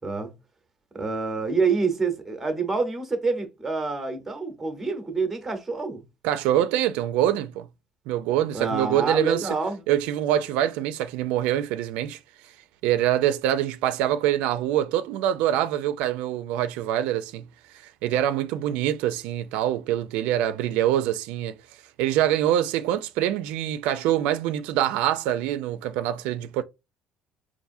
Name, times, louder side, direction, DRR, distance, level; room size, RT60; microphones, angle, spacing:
voice 1, 0.9-6.0 8.5-9.8, right 4 dB, 10° right, 0.9 m, -27 dB
voice 2, 6.2-7.7 8.1-9.5 9.9-12.2 12.8-17.4 18.0-21.6 22.0-26.6, right 12 dB, 90° right, 0.4 m, -24 dB
5.4 x 2.5 x 2.6 m
cardioid pair, 175°, 2 cm